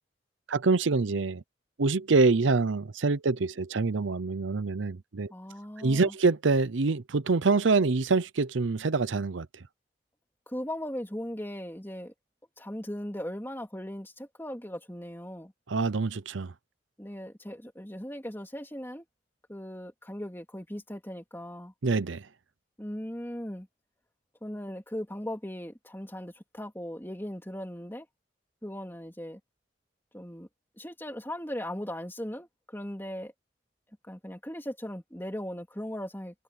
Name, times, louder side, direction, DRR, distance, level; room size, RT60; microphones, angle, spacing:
voice 1, 0.5-1.4 1.8-5.3 5.8-9.5 15.7-16.5 21.8-22.3, right 3 dB, 80° right, 0.7 m, -25 dB
voice 2, 5.3-6.1 10.5-12.1 12.6-15.5 17.0-19.0 19.5-21.7 22.8-23.7 24.4-28.1 28.6-29.4 30.1-30.5 30.8-33.3 34.0-36.4, equal, 10° left, 3.3 m, -38 dB
head